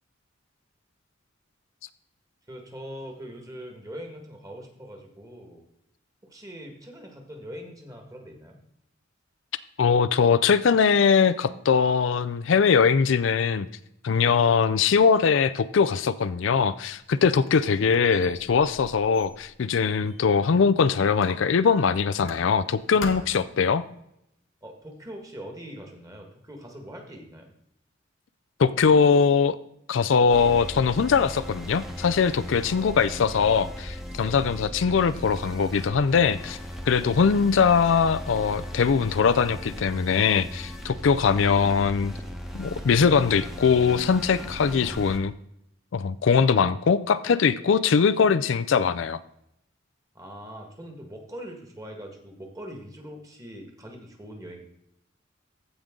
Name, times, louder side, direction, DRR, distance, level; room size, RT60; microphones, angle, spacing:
voice 1, 2.5-5.6 6.2-8.6 24.6-27.4 50.1-54.6, equal, 15° right, 2 dB, 1.6 m, -42 dB
voice 2, 9.8-13.7 14.0-23.8 28.6-29.6 29.9-36.6 36.9-42.1 42.5-45.3 45.9-49.2, left 6 dB, 70° left, 14 dB, 0.4 m, -21 dB
Squeak, 16.9-20.7 21.2-22.7 23.0-23.6, left 4 dB, 90° left, 1.1 m, -42 dB
sound 1, 30.3-45.2, equal, ahead, 1.0 m, -38 dB
15.0 x 5.2 x 3.7 m, 0.77 s
head